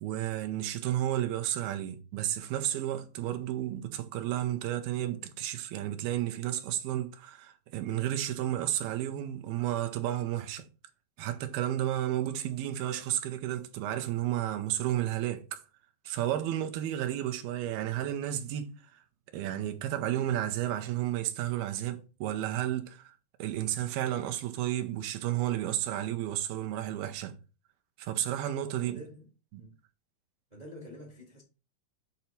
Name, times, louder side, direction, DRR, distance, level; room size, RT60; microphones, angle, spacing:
voice 1, 0.0-10.7 11.2-15.6 16.1-19.0 19.3-23.1 23.4-27.3 28.0-29.0 29.5-29.6, right 12 dB, 90° right, 2.7 m, -32 dB
voice 2, 28.6-29.3 29.5-29.8 30.5-31.4, equal, 60° right, 0.4 m, -48 dB
8.0 x 2.9 x 5.7 m
omnidirectional pair, 4.2 m